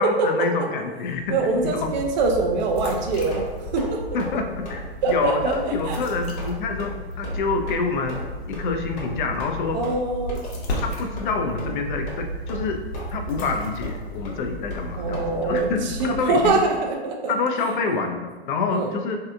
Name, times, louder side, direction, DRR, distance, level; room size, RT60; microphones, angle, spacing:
voice 1, 0.0-1.4 1.6-1.9 4.1-9.8 10.8-12.8 13.1-16.6 17.3-19.2, left 4 dB, 50° left, 4 dB, 0.5 m, -27 dB
sound 1, 1.0-16.9, equal, 70° left, 0.9 m, -34 dB
voice 2, 1.3-4.0 5.0-5.5 5.8-6.0 9.7-10.4 15.0-17.3 18.7-18.9, right 3 dB, 45° right, 2 dB, 0.6 m, -24 dB
sound 2, 2.9-3.5 3.8-3.9 4.2-4.4 4.6-4.8 5.1-5.2 5.5-5.7 5.9-6.1 6.4-6.5 6.8-6.9 7.2-7.4 7.7-7.8 8.1-8.2 8.5-8.6 9.0-9.1 9.4-9.5 9.8-9.9 10.3-10.4 10.7-10.9 11.2-11.3 11.6-11.7 12.1-12.2 12.5-12.6 12.9-13.5 13.8-14.0 14.2-14.3 14.7-14.8 15.1-15.2 15.6-15.7 16.0-16.1 16.4-16.6, left 2 dB, 30° left, 1.0 m, -36 dB
3.2 x 2.7 x 2.4 m, 1.3 s
hypercardioid pair, 115°, 32 cm